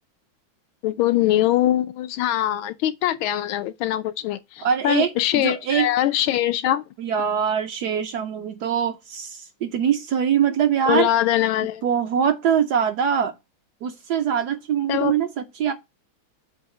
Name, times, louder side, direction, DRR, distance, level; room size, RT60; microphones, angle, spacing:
voice 1, 0.8-6.8 10.9-11.8 14.9-15.1, left 13 dB, 80° left, 1.4 m, -22 dB
voice 2, 4.6-5.9 7.0-11.1 11.8-13.3 13.8-15.7, right 8 dB, 70° right, 1.0 m, -23 dB
8.2 x 2.8 x 5.9 m
omnidirectional pair, 2.3 m